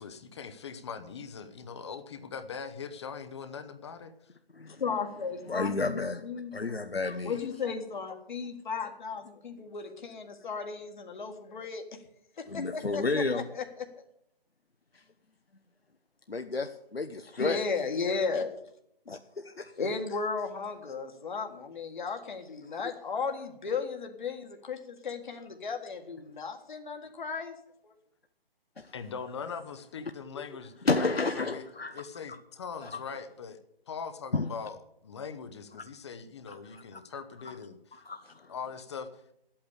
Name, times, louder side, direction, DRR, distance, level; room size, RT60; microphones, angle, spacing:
voice 1, 0.0-4.1 28.9-31.6 31.9-33.6 33.9-34.8 35.0-37.8 38.5-39.2, left 6 dB, 30° left, 0.8 m, -41 dB
voice 2, 4.8-6.5 7.2-11.8 12.4-13.6 17.4-18.5 19.8-27.6 27.8-27.9, left 5 dB, 55° left, 1.7 m, -35 dB
voice 3, 5.5-6.3 6.5-7.4 12.5-13.5 14.9-15.0 16.3-17.6 19.1-19.7 22.7-22.8 28.8-28.9 30.4-30.5 30.8-31.9 32.8-33.0 34.3-34.5 36.5-37.0 37.9-38.5, left 3 dB, 85° left, 1.0 m, -32 dB
11.5 x 8.7 x 8.4 m
figure-of-eight pair, 140°, 30 cm